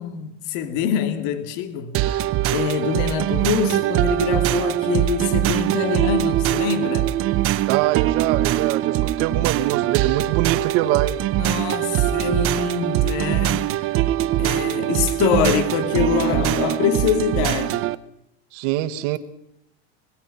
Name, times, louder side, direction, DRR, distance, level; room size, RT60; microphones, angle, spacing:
voice 1, 0.0-2.0 2.5-7.2 11.4-13.9 14.4-17.9, left 8 dB, 60° left, 2.6 m, -24 dB
sound 1, 1.9-18.0, right 14 dB, 40° right, 0.9 m, -22 dB
voice 2, 7.7-11.2 12.2-12.3 18.5-19.2, right 14 dB, 65° right, 1.8 m, -23 dB
26.0 x 20.5 x 5.9 m
supercardioid pair, 145°, 32 cm